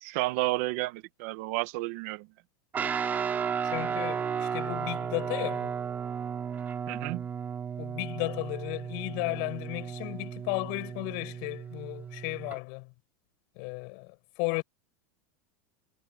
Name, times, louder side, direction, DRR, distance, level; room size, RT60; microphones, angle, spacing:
voice 1, 0.0-2.3 6.9-7.3, right 20 dB, 50° right, 1.2 m, -31 dB
Guitar, 2.7-12.6, right 7 dB, 20° right, 3.6 m, -34 dB
voice 2, 3.6-5.7 7.8-12.9 13.6-14.6, left 32 dB, 50° left, 5.6 m, -34 dB
supercardioid pair, 165°, 9 cm